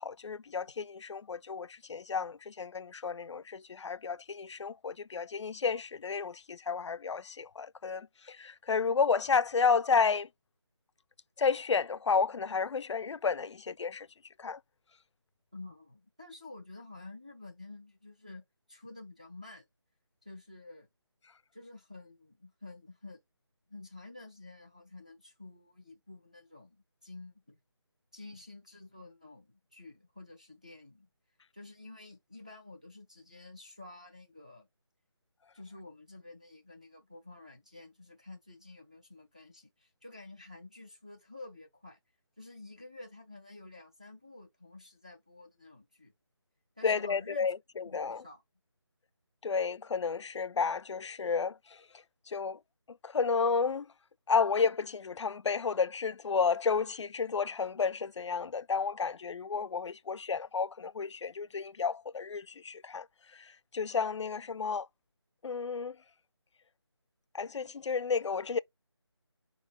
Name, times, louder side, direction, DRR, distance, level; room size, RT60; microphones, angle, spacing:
voice 1, 0.0-10.3 11.4-14.1 14.4-14.6 46.8-48.2 49.4-51.6 52.3-52.6 53.0-53.9 54.3-63.1 63.3-64.9 65.4-66.0 67.3-68.6, left 5 dB, 85° left, 0.4 m, -31 dB
voice 2, 15.5-19.6 20.2-20.9 21.5-23.2 23.7-27.6 28.1-31.1 31.5-34.7 35.5-42.0 42.4-46.1 46.8-47.5 47.8-48.4, left 2 dB, 15° right, 0.4 m, -50 dB
4.3 x 3.5 x 2.9 m
figure-of-eight pair, 175°, 15 cm